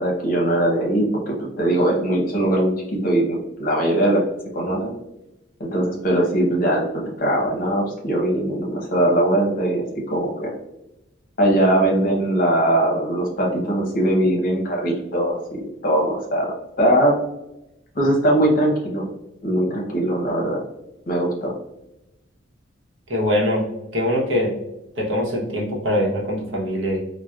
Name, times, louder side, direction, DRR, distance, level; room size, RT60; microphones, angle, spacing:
voice 1, 0.0-4.2 4.5-4.9 5.6-10.5 11.4-17.1 17.9-19.1 19.4-20.6 21.1-21.5, right 1 dB, 45° left, -1 dB, 0.8 m, -21 dB
voice 2, 23.1-23.6 23.9-24.5 25.0-27.0, left 1 dB, 75° right, 0 dB, 0.8 m, -22 dB
4.2 x 2.1 x 2.3 m, 0.89 s
head